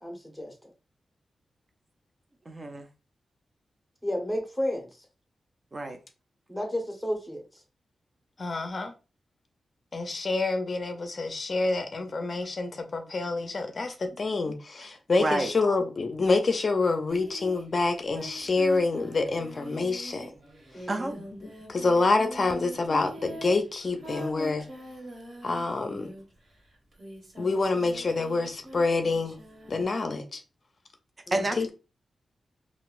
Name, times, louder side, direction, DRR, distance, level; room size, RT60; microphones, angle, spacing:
voice 1, 0.0-0.5 4.0-5.1 6.5-7.6 20.7-21.2 31.3-31.5, equal, 5° left, 0.9 m, -32 dB
voice 2, 2.5-2.9 5.7-6.0 14.5-14.6 15.2-15.5 20.9-21.3 31.3-31.7, right 2 dB, 35° right, 0.4 m, -29 dB
voice 3, 8.4-8.9 9.9-20.3 21.7-24.6 25.4-26.1 27.4-29.4 29.7-30.4 31.6-31.7, left 3 dB, 45° left, 0.5 m, -27 dB
Singing, 17.1-26.4 26.9-29.9, right 1 dB, 50° right, 1.5 m, -44 dB
3.8 x 2.4 x 2.4 m
wide cardioid pair, 90°, 0 cm